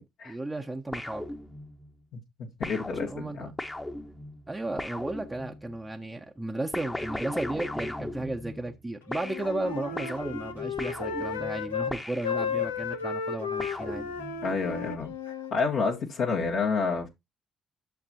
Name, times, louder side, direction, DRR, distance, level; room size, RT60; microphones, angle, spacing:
voice 1, 0.2-1.2 3.0-3.5 4.5-14.0, right 2 dB, 15° right, 1.1 m, -34 dB
sound 1, 0.9-1.9 2.6-5.8 6.7-8.8 9.1-12.9 13.6-14.6, left 1 dB, 15° left, 1.3 m, -38 dB
voice 2, 2.1-3.5 14.4-17.1, left 4 dB, 60° left, 1.7 m, -29 dB
Wind instrument woodwind instrument, 9.1-12.0 12.2-15.5, left 6 dB, 80° left, 0.8 m, -33 dB
11.5 x 7.3 x 2.9 m
figure-of-eight pair, 40°, 0 cm